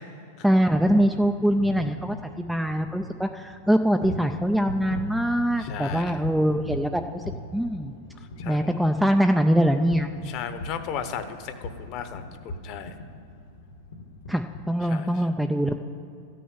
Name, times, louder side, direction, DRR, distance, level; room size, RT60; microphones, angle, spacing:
voice 1, 0.4-7.2 7.5-8.0 8.5-10.3 14.3-15.8, equal, ahead, 6 dB, 0.4 m, -23 dB
sound 1, 0.7-14.7, left 2 dB, 70° left, 1.4 m, -40 dB
voice 2, 5.6-6.2 8.4-8.7 10.2-12.9 14.8-15.1, left 8 dB, 40° left, 9 dB, 0.9 m, -35 dB
13.0 x 6.3 x 9.6 m, 2.5 s
supercardioid pair, 155°, 0 cm